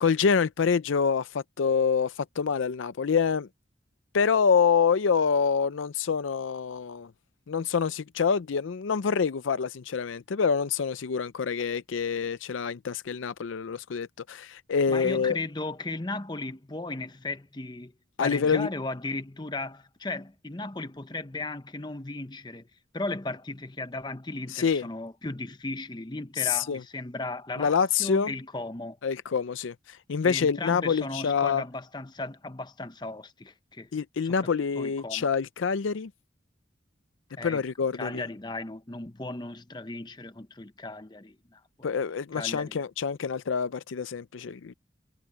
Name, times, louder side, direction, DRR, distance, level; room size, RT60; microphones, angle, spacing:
voice 1, 0.0-3.5 4.1-7.1 7.5-15.4 18.2-18.7 24.5-24.8 26.4-26.8 27.6-28.3 29.0-31.6 33.9-36.1 37.4-38.2 41.8-44.7, left 6 dB, 80° left, 0.5 m, -26 dB
voice 2, 14.9-17.9 18.2-22.7 22.9-27.7 28.0-29.0 30.2-33.9 34.2-34.4 34.7-35.3 37.4-37.6 37.9-41.6 42.3-42.8, left 2 dB, 20° left, 0.8 m, -36 dB
head